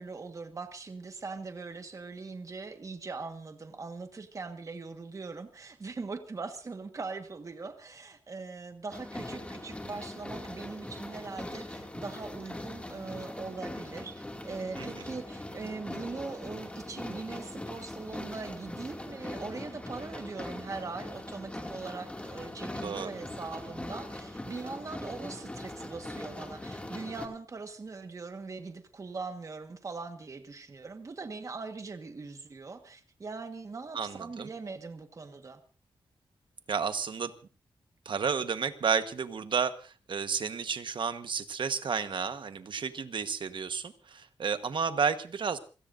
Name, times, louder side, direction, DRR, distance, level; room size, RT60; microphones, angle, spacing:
voice 1, 0.0-35.6, right 4 dB, 35° right, 7 dB, 1.5 m, -41 dB
sound 1, 8.9-27.3, left 1 dB, 15° left, 2.4 m, -41 dB
voice 2, 22.7-23.2 33.9-34.5 36.7-37.3 38.0-45.6, right 6 dB, 60° right, 10 dB, 1.2 m, -32 dB
28.0 x 18.0 x 2.6 m, 0.35 s
wide cardioid pair, 155°, 9 cm